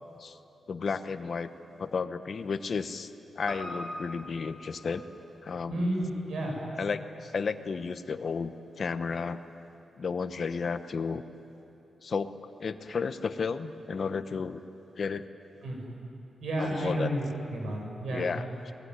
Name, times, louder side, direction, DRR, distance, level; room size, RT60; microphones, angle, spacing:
voice 1, 0.7-1.5 1.8-3.1 3.4-5.0 5.4-5.8 6.8-9.4 10.0-11.2 12.0-12.3 12.6-14.6 15.0-15.3 16.6-17.1 18.1-18.7, left 5 dB, 50° left, 10 dB, 1.1 m, -33 dB
Piano, 3.5-8.0 8.3-8.4, equal, ahead, 5.6 m, -44 dB
voice 2, 5.7-6.6 15.6-15.8 16.4-18.3, right 1 dB, 80° right, 0 dB, 7.9 m, -31 dB
27.0 x 20.5 x 9.8 m, 2.9 s
wide cardioid pair, 110°, 0 cm